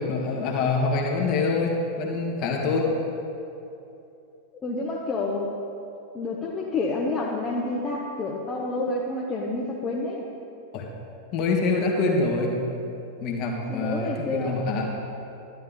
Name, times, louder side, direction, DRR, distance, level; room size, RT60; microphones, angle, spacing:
voice 1, 0.0-2.9 10.7-10.9 11.3-12.6 13.2-14.9, left 3 dB, 40° left, 0 dB, 1.8 m, -25 dB
voice 2, 4.6-5.5 6.1-10.3 13.7-14.6, left 2 dB, 20° left, -3 dB, 1.1 m, -29 dB
12.0 x 11.0 x 3.8 m, 2.8 s
figure-of-eight pair, 90°, 0 cm